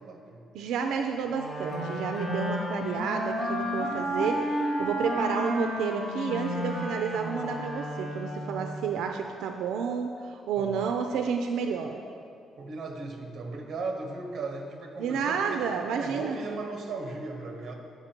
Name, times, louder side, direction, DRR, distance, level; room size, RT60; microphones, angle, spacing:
voice 1, 0.0-0.4 10.6-10.9 12.6-17.7, right 3 dB, 45° right, 2 dB, 1.1 m, -37 dB
voice 2, 0.5-12.0 15.0-16.4, right 6 dB, 85° right, 5 dB, 0.4 m, -30 dB
Wind instrument woodwind instrument, 1.3-8.7, equal, 50° left, 2.0 m, -32 dB
9.5 x 5.6 x 4.4 m, 2.4 s
cardioid pair, 160°, 0 cm